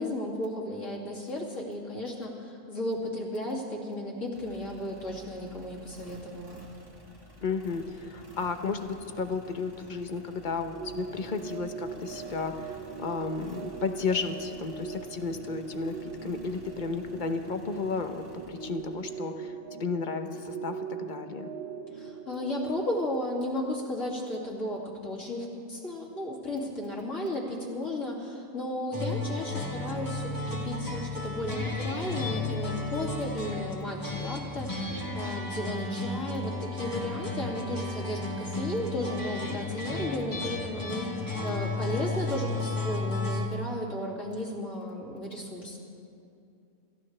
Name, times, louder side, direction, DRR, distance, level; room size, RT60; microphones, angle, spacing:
voice 1, 0.0-6.6 21.9-45.8, left 1 dB, 60° left, -3 dB, 2.8 m, -34 dB
sound 1, 4.3-19.4, right 1 dB, 15° right, 1.2 m, -52 dB
voice 2, 7.4-21.5, left 4 dB, 40° left, 7 dB, 0.8 m, -33 dB
sound 2, 10.8-22.6, right 6 dB, 40° right, 0.8 m, -41 dB
sound 3, 28.9-43.5, left 2 dB, 15° left, 1.4 m, -33 dB
27.0 x 14.5 x 3.3 m, 2.6 s
omnidirectional pair, 1.5 m